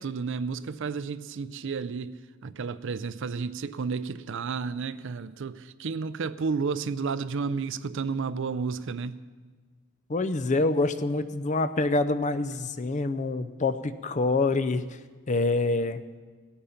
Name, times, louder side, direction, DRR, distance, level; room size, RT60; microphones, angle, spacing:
voice 1, 0.0-2.2 2.4-9.2, right 5 dB, 60° right, 0.5 m, -32 dB
voice 2, 10.1-14.8 15.3-16.0, left 3 dB, 35° left, 0.5 m, -26 dB
17.5 x 8.7 x 5.7 m
head